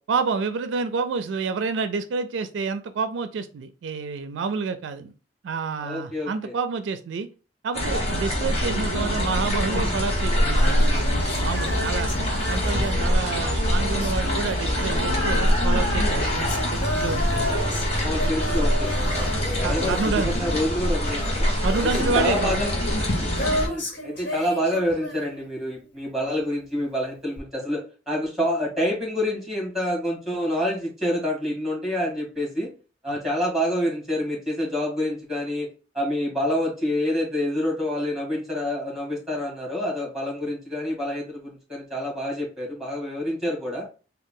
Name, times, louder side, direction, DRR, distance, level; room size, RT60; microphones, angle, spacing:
voice 1, 0.1-5.1 5.4-7.3 7.6-12.1 12.5-17.5 18.2-18.4 19.6-20.3 21.6-22.6 33.1-33.2, right 5 dB, 80° right, 10 dB, 0.4 m, -28 dB
voice 2, 5.8-6.5 18.0-20.0 20.2-21.5 21.9-22.7 23.7-32.7 33.0-35.7 35.9-43.8, left 1 dB, ahead, -2 dB, 1.9 m, -27 dB
sound 1, 7.7-23.7, equal, 35° left, 1.1 m, -24 dB
Female singing, 10.5-25.8 27.4-27.5, left 1 dB, 70° left, 1.4 m, -33 dB
3.6 x 2.3 x 3.6 m, 0.34 s
head